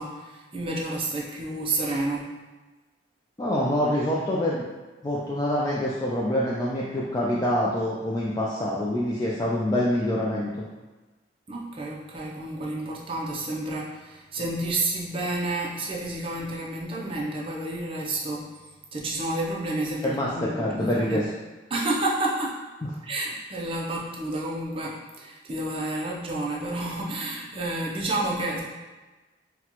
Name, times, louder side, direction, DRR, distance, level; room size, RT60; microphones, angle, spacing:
voice 1, 0.0-2.3 11.5-18.5 18.9-21.3 21.7-22.6 23.0-28.6, right 2 dB, 30° right, -3 dB, 0.5 m, -30 dB
voice 2, 3.4-4.6 5.0-10.6 20.0-21.2, left 1 dB, 20° left, -6 dB, 0.3 m, -26 dB
4.0 x 2.2 x 2.9 m, 1.2 s
head